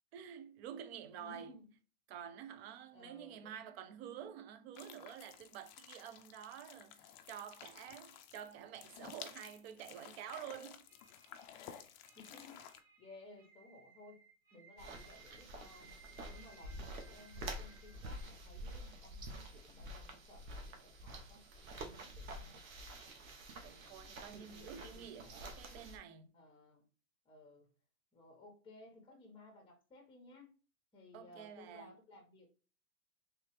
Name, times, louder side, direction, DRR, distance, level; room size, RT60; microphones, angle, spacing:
voice 1, 0.1-1.5 2.1-10.9 22.4-22.6 23.6-26.3 31.1-31.9, right 9 dB, 50° right, 0.5 m, -49 dB
voice 2, 1.2-1.7 2.9-3.7 12.1-12.7 13.0-14.2 14.5-16.0 16.3-21.5 21.8-22.6 23.7-25.4 26.3-26.8 27.2-27.7 28.1-30.5 30.9-32.5, left 2 dB, 10° left, 1.2 m, -58 dB
sound 1, 4.7-12.8, left 9 dB, 35° left, 0.4 m, -54 dB
sound 2, 10.8-18.2, right 4 dB, 5° right, 1.3 m, -63 dB
sound 3, 14.8-26.0, right 1 dB, 80° right, 1.0 m, -49 dB
3.3 x 2.9 x 3.1 m
hypercardioid pair, 125°, 41 cm